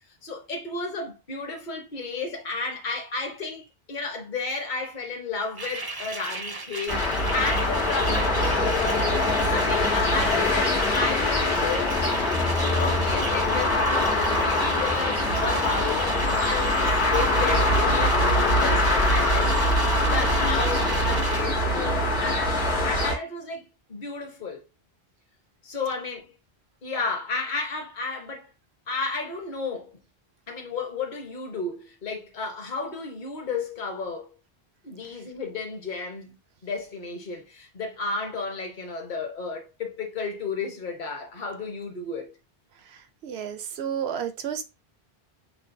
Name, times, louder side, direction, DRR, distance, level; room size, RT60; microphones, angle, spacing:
voice 1, 0.2-12.0 12.6-19.6 19.9-24.6 25.6-26.3 26.8-28.5 28.9-29.9 30.5-34.3 34.8-36.4 36.6-42.4, left 4 dB, 50° left, 1.1 m, -33 dB
sound 1, 5.4-21.4, right 3 dB, 30° right, 0.5 m, -36 dB
sound 2, 6.9-23.2, left 1 dB, 80° left, 1.7 m, -23 dB
voice 2, 42.8-44.6, right 8 dB, 80° right, 0.9 m, -32 dB
5.9 x 2.3 x 2.6 m
omnidirectional pair, 1.1 m